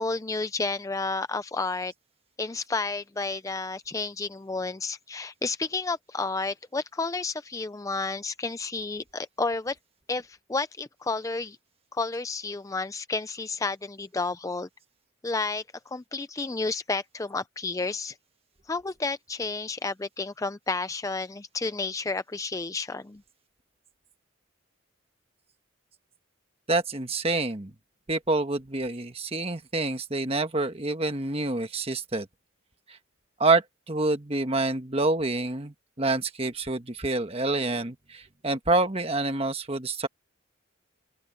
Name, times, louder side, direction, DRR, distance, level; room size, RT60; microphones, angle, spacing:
voice 1, 0.0-1.9 2.4-9.8 10.1-11.6 11.9-14.7 15.2-18.2 18.7-23.2, left 3 dB, 15° left, 0.4 m, -31 dB
voice 2, 26.7-27.7 28.1-32.3 33.4-40.1, right 2 dB, 25° right, 1.3 m, -27 dB
open air
head